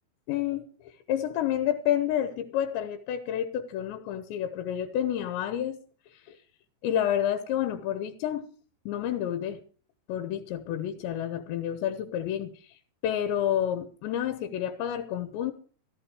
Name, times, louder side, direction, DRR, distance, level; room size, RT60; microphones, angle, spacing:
voice 1, 0.3-5.8 6.1-6.4 6.8-8.5 8.9-9.6 10.1-12.8 13.0-15.5, left 10 dB, 90° left, 10 dB, 3.3 m, -29 dB
15.5 x 14.5 x 4.9 m, 0.41 s
omnidirectional pair, 5.1 m